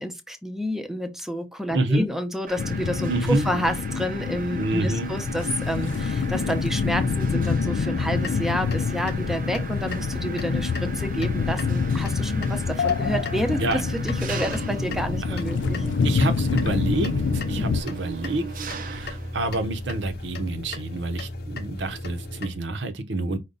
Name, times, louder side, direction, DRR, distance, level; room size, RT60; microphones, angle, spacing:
voice 1, 0.0-15.8 17.6-17.8, equal, ahead, 0.7 m, -29 dB
voice 2, 1.7-2.1 3.1-3.5 4.6-5.1 13.6-13.8 15.3-15.4 16.0-18.5 18.8-23.4, right 2 dB, 75° right, 0.8 m, -27 dB
Mechanisms, 2.5-20.5, right 5 dB, 50° right, 0.5 m, -39 dB
sound 1, 2.6-17.8, left 5 dB, 80° left, 0.4 m, -27 dB
sound 2, 8.1-22.5, left 2 dB, 60° left, 0.8 m, -36 dB
5.1 x 2.3 x 3.9 m
head